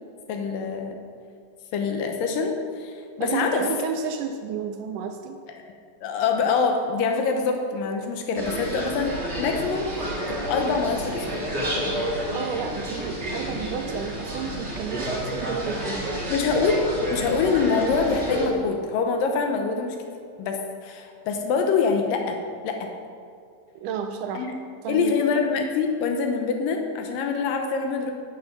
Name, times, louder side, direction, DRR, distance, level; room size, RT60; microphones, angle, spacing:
voice 1, 0.3-0.9 1.7-3.6 6.0-9.9 10.3-11.5 16.3-16.8 17.1-20.0 20.4-22.4 22.6-22.8 24.3-24.5 24.9-28.1, left 5 dB, 80° left, 4 dB, 2.6 m, -25 dB
voice 2, 3.2-5.4 12.3-16.2 23.8-24.5 24.8-25.1, right 6 dB, 80° right, 6 dB, 1.9 m, -31 dB
sound 1, 8.4-18.5, equal, 30° right, 1.2 m, -30 dB
11.0 x 6.5 x 5.8 m, 2.3 s
omnidirectional pair, 4.1 m